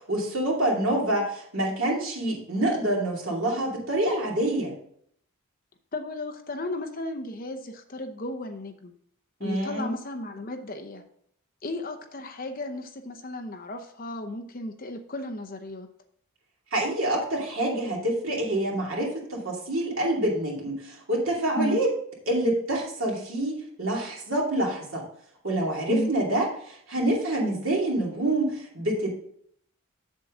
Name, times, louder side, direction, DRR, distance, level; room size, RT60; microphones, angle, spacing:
voice 1, 0.0-4.7 9.4-9.9 16.7-21.9 22.3-25.0 25.4-29.1, right 1 dB, 65° right, -2 dB, 2.6 m, -27 dB
voice 2, 5.9-8.9 9.4-11.0 11.6-15.9 21.6-21.8 25.9-26.1, left 1 dB, 40° left, 6 dB, 0.8 m, -34 dB
7.5 x 7.4 x 3.8 m, 0.67 s
head